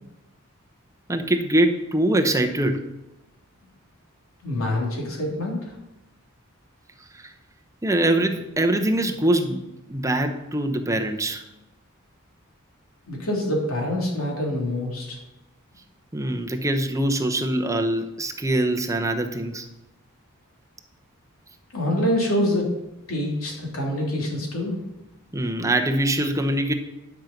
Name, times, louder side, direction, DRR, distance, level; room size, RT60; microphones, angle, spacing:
voice 1, 1.1-2.8 7.1-7.3 7.8-9.6 9.9-11.4 16.1-19.7 25.3-26.7, right 1 dB, 15° right, 4 dB, 0.9 m, -23 dB
voice 2, 4.4-5.7 13.1-15.2 21.7-22.7 23.1-24.8, left 1 dB, 80° left, -1 dB, 3.0 m, -25 dB
11.0 x 6.0 x 5.2 m, 0.98 s
head